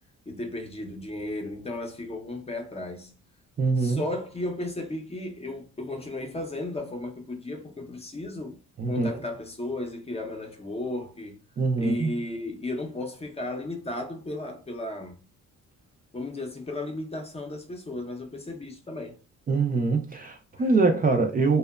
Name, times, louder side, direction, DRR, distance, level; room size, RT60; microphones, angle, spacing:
voice 1, 0.3-3.2 3.8-8.6 8.9-11.4 11.8-15.2 16.1-19.2 20.6-20.7, left 2 dB, 20° left, 0.6 m, -34 dB
voice 2, 3.6-4.0 8.8-9.2 11.6-12.1 19.5-21.6, right 3 dB, 30° right, 0.4 m, -24 dB
2.8 x 2.1 x 2.3 m
cardioid pair, 110°, 30 cm